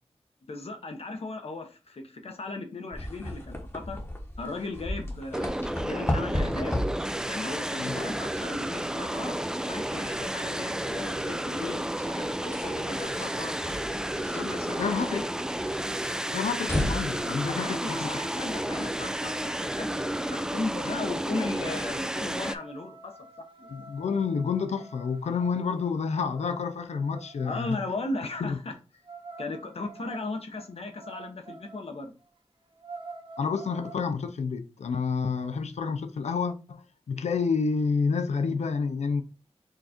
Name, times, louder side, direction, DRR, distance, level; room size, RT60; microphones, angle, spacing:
voice 1, 0.5-4.0 4.4-5.5 5.8-6.7 7.3-9.4 9.7-13.5 14.1-15.2 17.5-20.0 20.3-23.2 23.6-23.7 27.4-28.7 29.4-32.1, left 3 dB, 65° left, 1.0 m, -36 dB
sound 1, 2.9-20.2, left 1 dB, 20° left, 1.1 m, -37 dB
sound 2, 5.3-22.5, right 1 dB, 5° right, 0.3 m, -32 dB
voice 2, 14.8-15.2 16.3-18.1 23.7-27.8 28.4-28.6 33.4-39.2, left 5 dB, 85° left, 0.5 m, -29 dB
sound 3, 22.1-27.8 29.0-31.9 32.3-32.4 32.7-34.1, right 3 dB, 45° right, 1.0 m, -48 dB
4.6 x 2.5 x 4.3 m
wide cardioid pair, 85°, 11 cm